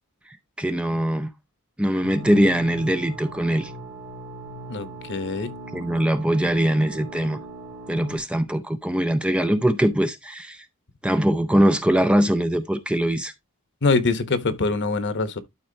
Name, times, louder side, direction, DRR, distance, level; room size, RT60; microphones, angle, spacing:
voice 1, 0.6-1.3 1.8-3.7 5.7-7.4 7.9-10.7 11.0-13.3, equal, 5° right, 0.5 m, -22 dB
sound 1, 2.0-8.2, right 2 dB, 80° right, 2.3 m, -39 dB
voice 2, 4.7-5.5 13.8-15.4, left 3 dB, 55° left, 1.0 m, -24 dB
12.0 x 4.3 x 2.8 m
head